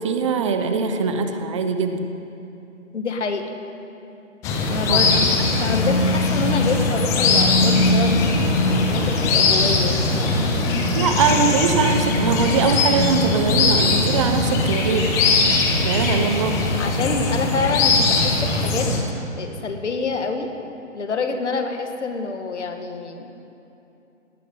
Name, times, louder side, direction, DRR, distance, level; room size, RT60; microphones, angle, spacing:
voice 1, 0.0-2.1 4.9-5.2 10.9-15.1 15.8-16.6, right 5 dB, 25° right, 7 dB, 0.8 m, -22 dB
voice 2, 2.9-3.5 4.7-8.3 8.7-10.5 16.8-18.9 19.4-20.5 20.9-23.3, left 4 dB, 65° left, 5 dB, 1.9 m, -27 dB
sound 1, 4.4-19.0, left 3 dB, 10° left, 0.7 m, -20 dB
18.0 x 8.1 x 9.3 m, 2.9 s
figure-of-eight pair, 140°, 38 cm